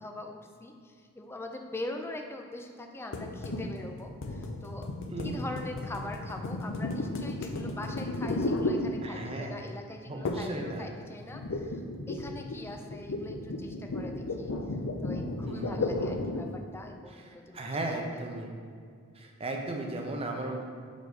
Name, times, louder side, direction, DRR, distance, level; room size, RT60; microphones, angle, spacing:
voice 1, 0.0-4.9 5.2-11.8 12.1-14.5 15.0-17.6 17.9-18.2 18.8-18.9, left 2 dB, 10° left, 3 dB, 0.4 m, -42 dB
sound 1, 3.1-9.4 10.2-10.6 10.9-16.6, left 2 dB, 60° left, 0.5 m, -34 dB
voice 2, 5.1-5.4 9.0-9.6 10.1-10.9 15.4-15.8 17.5-18.5 19.2-20.6, right 2 dB, 25° right, 1 dB, 0.7 m, -35 dB
5.1 x 4.0 x 5.2 m, 2.1 s
head